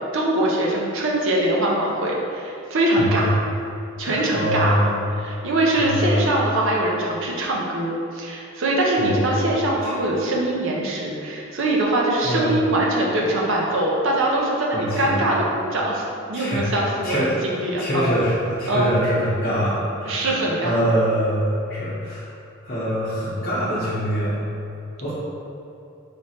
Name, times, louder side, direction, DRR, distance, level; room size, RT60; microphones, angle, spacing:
voice 1, 0.0-3.3 4.0-4.7 5.2-18.1 18.7-18.9 20.1-20.8, right 1 dB, 65° right, -2 dB, 0.7 m, -22 dB
voice 2, 4.0-5.0 5.8-6.3 9.0-9.3 9.8-9.9 12.2-12.6 14.7-15.2 16.3-22.3 22.6-24.4 25.0-25.1, equal, 45° left, -10 dB, 0.8 m, -24 dB
3.3 x 3.0 x 4.2 m, 2.7 s
head